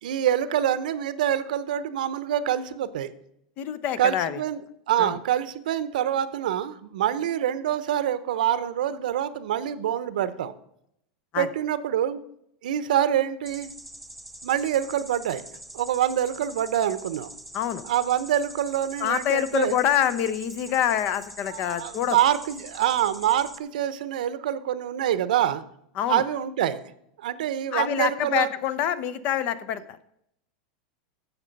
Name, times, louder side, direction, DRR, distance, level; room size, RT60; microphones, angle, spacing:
voice 1, 0.0-3.1 4.0-4.6 4.9-10.5 11.4-12.2 12.6-13.7 14.4-15.4 15.7-17.3 17.8-19.8 21.5-25.6 26.1-26.8 27.2-28.5, right 10 dB, 85° right, 15 dB, 0.8 m, -25 dB
voice 2, 3.6-4.4 5.0-5.1 11.3-11.5 17.5-17.8 19.0-22.2 26.0-26.2 27.7-30.0, left 10 dB, 35° left, 15 dB, 0.6 m, -26 dB
sound 1, 13.4-23.6, right 1 dB, ahead, 0.5 m, -44 dB
12.0 x 7.5 x 5.3 m, 0.75 s
supercardioid pair, 160°, 4 cm